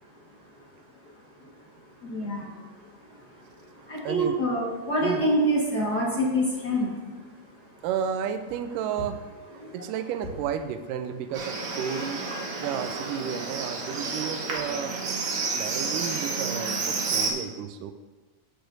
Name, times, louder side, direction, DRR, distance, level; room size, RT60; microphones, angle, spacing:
voice 1, 2.0-2.5 3.9-6.9, equal, 45° left, -4 dB, 1.4 m, -25 dB
voice 2, 3.8-4.4 5.0-5.2 7.8-9.2 9.5-12.4 12.6-15.0 15.6-17.9, right 8 dB, 85° right, 9 dB, 2.2 m, -32 dB
Livestock farm animals working animals, 11.3-17.3, right 4 dB, 70° right, 1.0 m, -30 dB
13.5 x 6.9 x 2.6 m, 1.3 s
omnidirectional pair, 3.7 m